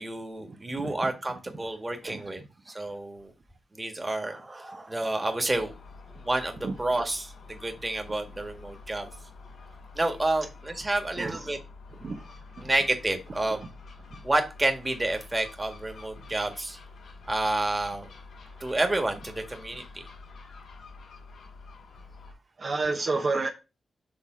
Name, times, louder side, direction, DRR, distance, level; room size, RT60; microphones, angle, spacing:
voice 1, 0.0-2.4 2.7-3.3 3.7-5.7 6.2-9.1 10.0-11.6 12.6-13.6 14.2-16.8 17.3-18.1 18.6-19.8, right 2 dB, 20° right, 1.7 m, -29 dB
voice 2, 0.8-1.1 2.0-2.2 6.6-6.8 11.2-11.4 12.0-12.2 12.6-12.7 22.6-23.5, right 3 dB, 55° right, 1.0 m, -30 dB
Gull seagull, 5.5-22.3, left 4 dB, 90° left, 2.5 m, -48 dB
7.0 x 3.5 x 5.0 m
cardioid pair, 75°, 0 cm